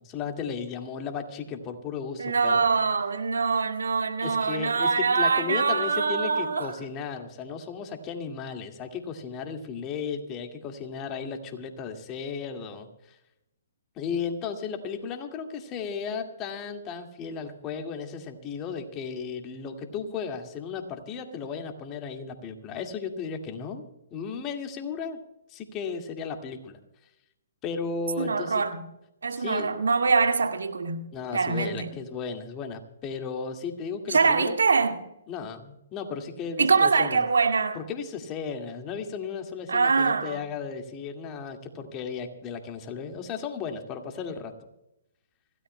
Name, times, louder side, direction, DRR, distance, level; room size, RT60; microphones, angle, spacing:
voice 1, 0.0-2.7 4.2-13.2 14.0-23.8 24.1-25.2 25.5-26.8 27.6-28.6 29.3-29.8 31.1-34.5 35.3-37.2 37.7-44.5, left 6 dB, 25° left, 2.0 m, -35 dB
voice 2, 2.2-6.7 28.2-28.9 29.2-31.9 34.1-35.0 36.6-37.8 39.7-40.4, right 4 dB, 80° right, 2.0 m, -24 dB
26.5 x 16.5 x 2.2 m
hypercardioid pair, 140°, 0 cm